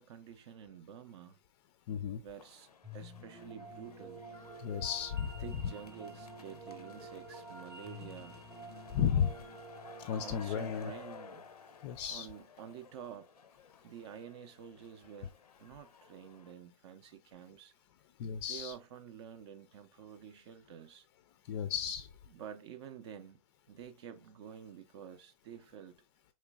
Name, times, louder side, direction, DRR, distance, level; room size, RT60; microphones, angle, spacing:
voice 1, 0.0-1.4 2.2-4.2 5.4-8.4 10.1-11.5 12.1-13.3 13.8-15.3 15.6-17.7 18.5-21.1 22.3-23.4 23.7-26.0, right 8 dB, 45° right, 0.5 m, -49 dB
voice 2, 1.9-2.2 4.6-5.3 8.9-9.3 10.0-10.9 11.8-12.3 18.2-18.7 21.5-22.1, left 8 dB, 40° left, 0.4 m, -33 dB
sound 1, 2.3-16.5, left 6 dB, 90° left, 0.5 m, -55 dB
sound 2, 2.8-12.0, right 1 dB, 15° right, 0.8 m, -50 dB
4.4 x 3.1 x 2.3 m
hypercardioid pair, 120°, 19 cm